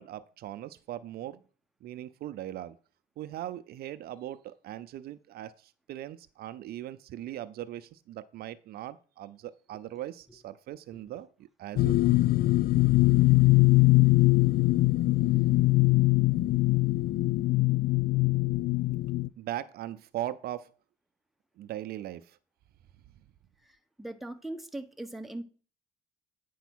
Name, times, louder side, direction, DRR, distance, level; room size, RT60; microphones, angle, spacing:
voice 1, 0.0-1.4 1.8-2.8 3.2-12.2 15.2-15.6 19.4-20.7 21.6-22.4, right 13 dB, 65° right, 13 dB, 0.6 m, -40 dB
sound 1, 11.8-19.3, left 19 dB, 60° left, 0.4 m, -22 dB
voice 2, 23.6-25.4, right 1 dB, ahead, 6 dB, 0.9 m, -40 dB
9.2 x 4.7 x 6.2 m, 0.38 s
cardioid pair, 110°, 17 cm